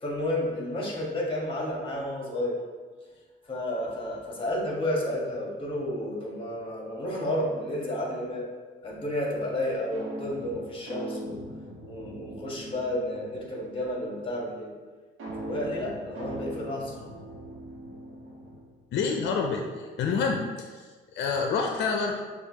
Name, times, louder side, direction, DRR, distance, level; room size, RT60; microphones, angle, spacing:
voice 1, 0.0-2.6 3.5-8.5 8.8-11.4 11.9-14.7 15.4-16.9, left 1 dB, 25° left, -3 dB, 1.3 m, -31 dB
sound 1, 9.9-13.6 15.2-18.8, right 1 dB, 80° right, 1.3 m, -40 dB
voice 2, 18.9-20.8 21.1-22.2, left 5 dB, 65° left, 2 dB, 0.5 m, -28 dB
6.5 x 2.5 x 2.8 m, 1.4 s
cardioid pair, 90°, 20 cm